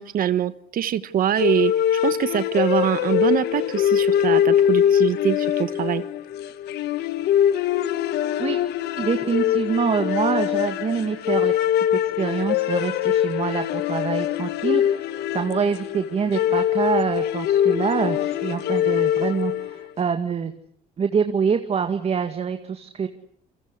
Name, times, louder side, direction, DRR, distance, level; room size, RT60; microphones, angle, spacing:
voice 1, 0.0-1.7 2.0-6.0, right 10 dB, 55° right, 14 dB, 1.3 m, -24 dB
sound 1, 1.4-19.9, left 10 dB, 75° left, 1.3 m, -23 dB
voice 2, 9.0-20.5 21.0-23.1, right 6 dB, 35° right, 7 dB, 2.1 m, -25 dB
29.5 x 23.5 x 8.1 m, 0.63 s
cardioid pair, 110°, 17 cm